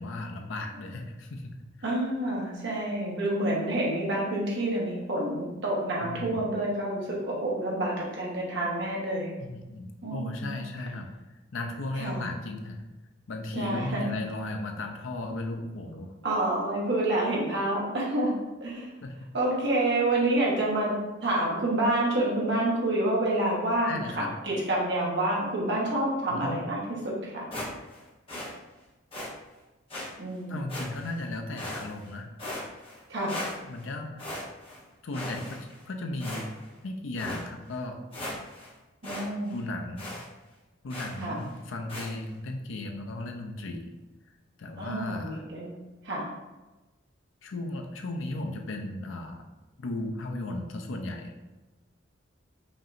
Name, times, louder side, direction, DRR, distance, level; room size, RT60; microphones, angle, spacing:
voice 1, 0.0-1.6 6.0-6.4 9.4-11.1 11.5-12.8 13.3-16.1 19.0-19.2 23.9-24.3 26.3-26.6 30.5-32.3 33.7-34.4 35.0-35.6 35.9-36.5 36.8-38.0 39.5-40.2 40.8-43.9 44.6-45.4 47.4-49.4 49.8-51.5, left 2 dB, 80° left, 4 dB, 0.6 m, -35 dB
voice 2, 1.8-9.3 10.0-10.6 11.9-12.3 13.5-14.2 16.2-18.3 18.6-18.9 19.3-20.9 21.2-27.5 30.2-30.7 33.1-33.3 39.0-39.6 41.2-41.4 44.8-45.7 46.0-46.3, right 1 dB, 65° right, -4 dB, 1.3 m, -28 dB
sound 1, 27.5-28.0 28.3-28.5 29.1-29.3 29.9-30.1 30.7-31.2 31.6-32.1 32.4-33.0 33.3-33.9 34.2-34.8 35.1-35.8 36.2-36.7 37.2-37.4 37.8-37.9 38.1-38.7 39.0-39.3 39.5-39.6 40.0-40.2 40.9-41.2 41.9-42.1, left 1 dB, 30° left, 1.1 m, -37 dB
5.3 x 2.8 x 2.6 m, 1.1 s
head